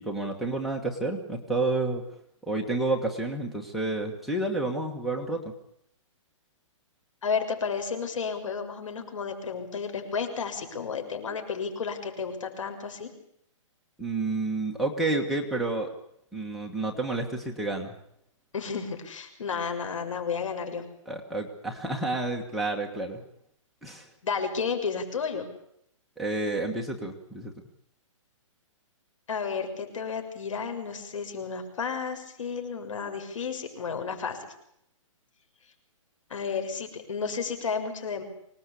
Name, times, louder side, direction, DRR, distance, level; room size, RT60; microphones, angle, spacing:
voice 1, 0.0-2.0 2.4-5.5 14.0-15.9 16.3-17.9 21.1-23.2 23.8-24.1 26.2-27.5, right 2 dB, ahead, 1 dB, 1.6 m, -30 dB
voice 2, 7.2-13.1 18.5-20.8 24.2-25.4 29.3-34.5 36.3-38.2, left 5 dB, 70° left, 6 dB, 6.7 m, -32 dB
25.5 x 19.5 x 8.5 m, 0.74 s
hypercardioid pair, 165°, 17 cm